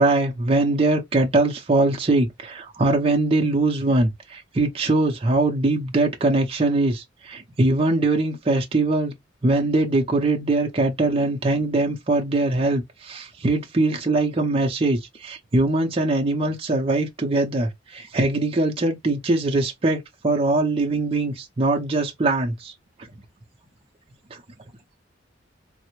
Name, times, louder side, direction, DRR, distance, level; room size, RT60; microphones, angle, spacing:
voice 1, 0.0-9.1 9.4-22.7 24.3-24.4, right 2 dB, 30° right, 0.5 m, -22 dB
3.2 x 2.0 x 2.9 m
head